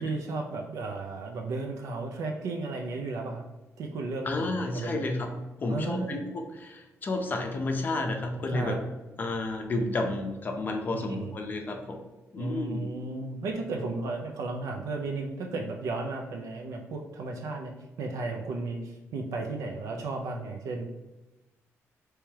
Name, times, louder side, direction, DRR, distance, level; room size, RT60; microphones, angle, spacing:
voice 1, 0.0-3.5 3.8-5.0 5.7-6.2 8.5-8.8 10.9-11.4 12.4-17.7 18.0-20.9, right 3 dB, 80° right, 2 dB, 0.4 m, -34 dB
voice 2, 4.2-5.3 5.6-8.8 9.2-12.0 12.3-12.9, left 2 dB, 35° left, 3 dB, 0.5 m, -31 dB
3.4 x 3.1 x 3.2 m, 1.0 s
cardioid pair, 135°, 6 cm